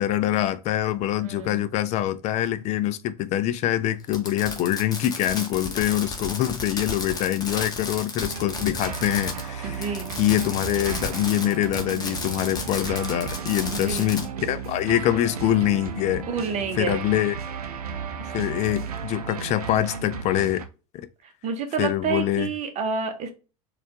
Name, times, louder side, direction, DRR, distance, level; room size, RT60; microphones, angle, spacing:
voice 1, 0.0-16.3 16.8-17.4 18.3-20.7 21.8-22.5, left 13 dB, 35° left, 0.4 m, -24 dB
voice 2, 1.2-1.6 9.6-10.1 13.7-14.1 16.3-17.0 21.4-23.3, right 5 dB, 35° right, 0.9 m, -29 dB
Fireworks, 4.1-9.5 9.7-14.2, left 3 dB, 20° left, 0.9 m, -33 dB
sound 1, 8.2-20.7, right 6 dB, 75° right, 0.5 m, -34 dB
4.2 x 2.4 x 2.8 m
figure-of-eight pair, 75°, 19 cm